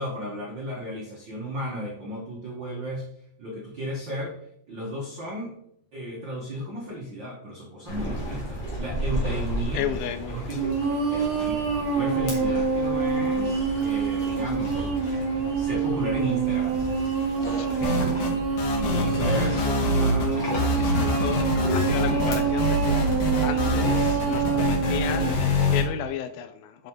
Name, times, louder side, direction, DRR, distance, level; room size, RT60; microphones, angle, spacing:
voice 1, 0.0-3.1 3.4-4.4 4.7-5.5 5.9-9.8 10.3-10.6 11.1-14.9 15.2-16.9 17.6-18.0 18.8-19.7 20.0-20.4 20.9-21.2, equal, 70° right, -3 dB, 1.0 m, -34 dB
sound 1, 7.9-25.8, equal, 35° left, 2.4 m, -34 dB
voice 2, 9.7-10.7 17.5-18.1 18.5-19.1 20.8-26.9, left 9 dB, 85° left, 10 dB, 2.5 m, -34 dB
sound 2, 10.6-25.3, right 6 dB, 35° right, 3.1 m, -26 dB
sound 3, 17.8-18.3 18.6-20.3 20.6-25.8, left 2 dB, 65° left, 3.0 m, -25 dB
6.5 x 5.4 x 4.6 m, 0.71 s
omnidirectional pair, 4.3 m